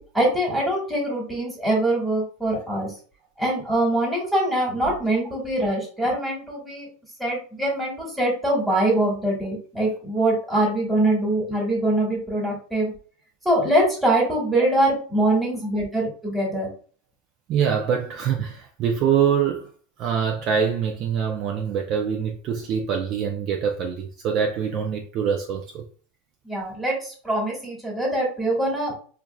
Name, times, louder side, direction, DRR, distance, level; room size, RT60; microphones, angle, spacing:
voice 1, 0.1-2.9 3.4-6.9 7.2-12.9 13.4-16.7 26.4-28.9, right 1 dB, 5° right, 1.5 m, -23 dB
voice 2, 17.5-19.7 20.0-25.8, right 7 dB, 40° right, 0.5 m, -24 dB
4.5 x 2.5 x 2.3 m
supercardioid pair, 135°, 0 cm